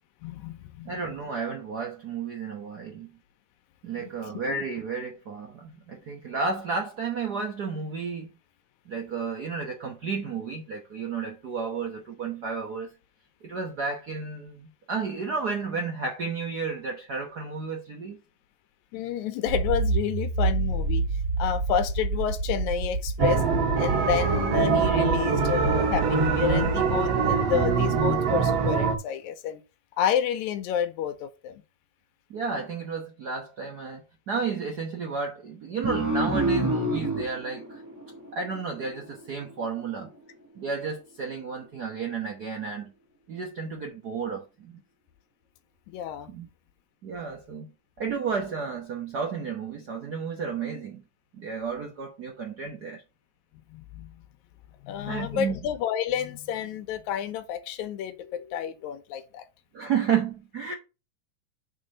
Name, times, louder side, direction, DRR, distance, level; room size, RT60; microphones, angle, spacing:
voice 1, 0.2-1.0 4.0-4.1 18.9-21.1 21.4-23.4 23.8-29.6 30.0-31.6 45.9-46.3 53.7-54.1 54.8-59.5, left 9 dB, 85° left, 2.1 m, -30 dB
voice 2, 0.8-3.2 3.8-8.3 8.9-12.9 13.4-18.2 32.3-37.8 38.3-40.1 40.5-42.9 43.3-44.8 46.3-46.5 47.0-47.7 48.0-51.0 51.3-53.0 55.1-55.6 59.7-60.7, right 5 dB, 80° right, 0.8 m, -32 dB
Accelerating revving vroom, 19.5-26.7, right 3 dB, 45° right, 2.5 m, -28 dB
sound 1, 23.2-29.0, right 5 dB, 65° right, 2.1 m, -24 dB
sound 2, 35.8-39.0, right 2 dB, 15° right, 0.6 m, -28 dB
5.5 x 4.6 x 6.4 m
omnidirectional pair, 3.4 m